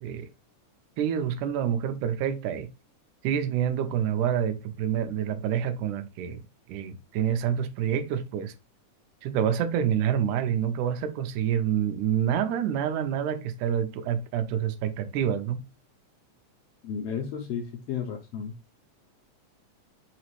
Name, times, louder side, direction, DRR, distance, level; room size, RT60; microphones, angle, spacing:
voice 1, 1.0-2.7 3.2-6.4 6.7-8.5 9.2-15.6, right 9 dB, 85° right, 2.1 m, -27 dB
voice 2, 16.8-18.5, left 7 dB, 80° left, 1.4 m, -33 dB
4.9 x 3.0 x 3.0 m
omnidirectional pair, 3.4 m